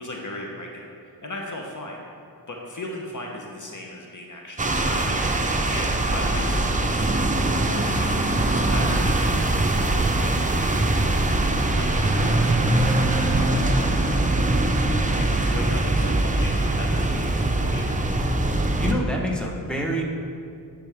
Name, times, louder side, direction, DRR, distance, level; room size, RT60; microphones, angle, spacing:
voice 1, 0.0-2.0 2.5-14.7 14.9-17.9, left 1 dB, 50° left, 0 dB, 1.0 m, -37 dB
sound 1, 4.6-18.9, right 2 dB, 20° right, 0.7 m, -22 dB
voice 2, 18.8-20.0, equal, ahead, -1 dB, 1.3 m, -26 dB
10.5 x 5.1 x 3.5 m, 2.4 s
cardioid pair, 45°, 39 cm